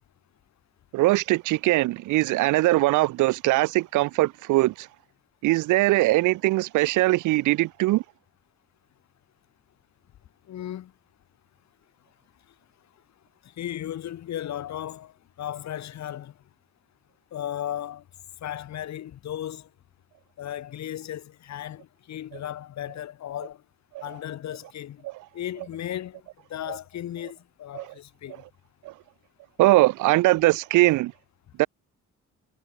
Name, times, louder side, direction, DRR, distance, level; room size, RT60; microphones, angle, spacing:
voice 1, 0.9-4.9 5.4-8.0 23.9-24.0 25.0-25.1 27.8-27.9 28.8-28.9 29.6-31.1 31.6-31.7, right 19 dB, 80° right, 0.5 m, -21 dB
voice 2, 10.5-10.9 13.6-15.1 15.4-16.3 17.3-18.0 18.4-19.7 20.4-23.6 24.0-25.0 25.3-26.2 26.5-28.4, left 11 dB, 65° left, 1.5 m, -35 dB
cardioid pair, 90°, 30 cm